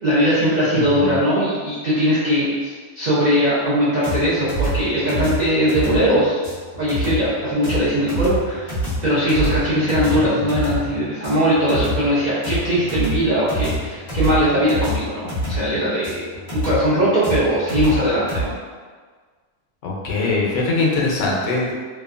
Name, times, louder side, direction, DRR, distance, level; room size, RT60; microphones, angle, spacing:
voice 1, 0.0-6.4 6.8-8.7 9.0-16.3 16.5-18.5, equal, 45° right, -12 dB, 0.6 m, -20 dB
voice 2, 0.7-1.1 10.1-10.4 19.8-21.7, left 3 dB, 85° left, -3 dB, 1.0 m, -22 dB
sound 1, 4.0-18.4, equal, 40° left, 0.9 m, -26 dB
2.8 x 2.1 x 2.4 m, 1.5 s
omnidirectional pair, 1.4 m